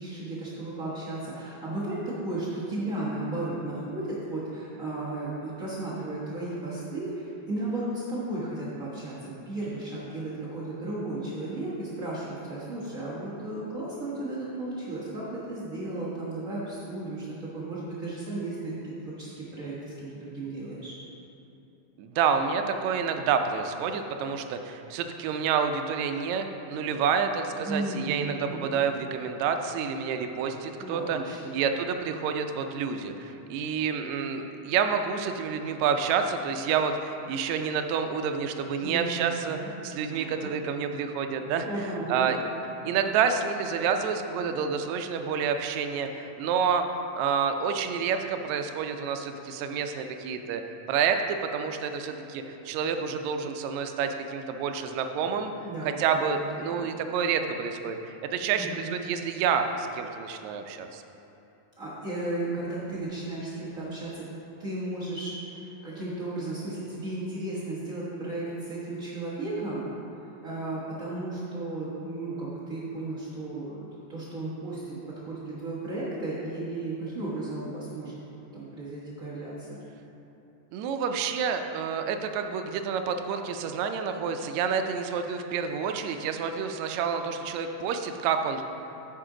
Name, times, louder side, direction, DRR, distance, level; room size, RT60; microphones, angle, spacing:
voice 1, 0.0-21.0 27.6-28.7 30.8-31.5 38.8-39.7 40.1-40.5 41.6-42.3 55.4-56.8 58.5-58.9 61.8-64.3 64.6-69.9 70.4-78.2 78.5-79.8, right 2 dB, 50° right, -9 dB, 0.9 m, -34 dB
voice 2, 22.0-31.2 31.5-39.6 39.8-41.7 42.1-42.4 42.8-46.9 47.2-50.6 50.9-55.5 55.8-58.0 58.2-61.0 80.7-88.6, right 6 dB, 80° right, 6 dB, 1.8 m, -28 dB
9.5 x 6.8 x 3.8 m, 2.9 s
omnidirectional pair, 3.5 m